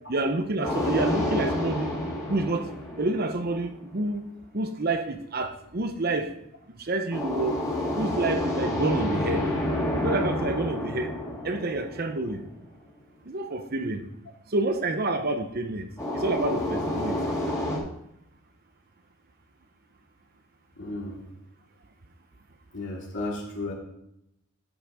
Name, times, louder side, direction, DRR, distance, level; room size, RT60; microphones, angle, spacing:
voice 1, 0.1-1.9 2.3-4.2 4.5-6.3 6.8-7.6 7.9-9.5 10.0-11.1 11.4-12.4 13.3-14.0 14.5-17.2, right 2 dB, 45° right, 0.8 m, -28 dB
sound 1, 0.6-3.7 7.1-12.5 16.0-17.8, left 1 dB, 15° left, 2.3 m, -29 dB
voice 2, 20.8-21.3 22.7-23.7, left 2 dB, 55° left, 2.8 m, -33 dB
12.0 x 5.9 x 5.0 m
head